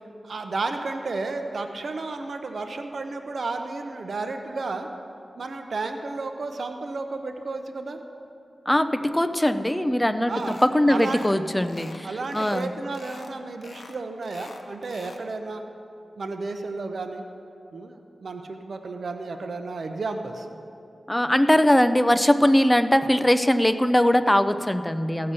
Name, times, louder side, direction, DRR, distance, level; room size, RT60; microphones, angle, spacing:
voice 1, 0.2-4.9 5.4-8.0 10.3-10.6 10.9-11.2 12.0-15.6 16.2-17.2 17.7-20.5, right 3 dB, 70° right, 6 dB, 0.7 m, -32 dB
voice 2, 8.7-12.7 21.1-25.3, left 1 dB, 10° left, 11 dB, 0.5 m, -21 dB
sound 1, 10.4-10.7 11.0-11.3 11.6-12.7 12.9-13.3 13.6-15.2, left 3 dB, 60° left, 0.9 m, -45 dB
15.5 x 6.7 x 5.5 m, 2.6 s
wide cardioid pair, 75°, 0 cm